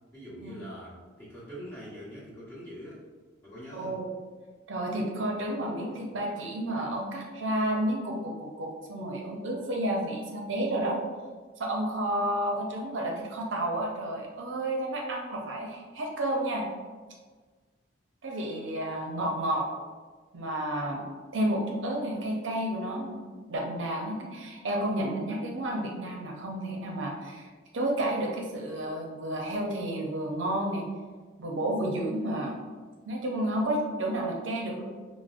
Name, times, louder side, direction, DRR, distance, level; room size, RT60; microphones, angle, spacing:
voice 1, 0.1-3.0 3.4-4.0, equal, 10° left, -10 dB, 1.0 m, -43 dB
voice 2, 3.7-4.1 4.7-11.0 11.6-16.6 18.2-19.7 20.3-21.0 21.3-27.5 27.7-30.8 31.4-32.6 33.1-34.8, right 1 dB, 70° right, 0 dB, 0.5 m, -31 dB
4.7 x 2.0 x 2.4 m, 1.4 s
head